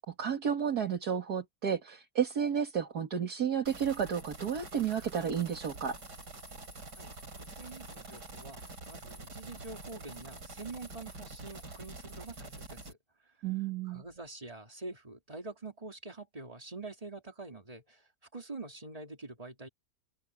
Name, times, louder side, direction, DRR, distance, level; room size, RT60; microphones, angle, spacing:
voice 1, 0.1-6.0 13.4-14.0, right 7 dB, 65° right, 2.4 m, -32 dB
sound 1, 3.7-12.9, right 2 dB, 80° right, 5.2 m, -47 dB
voice 2, 7.4-8.6 8.9-13.0 13.9-18.0 18.3-19.7, right 3 dB, 20° right, 2.8 m, -45 dB
open air
omnidirectional pair, 1.8 m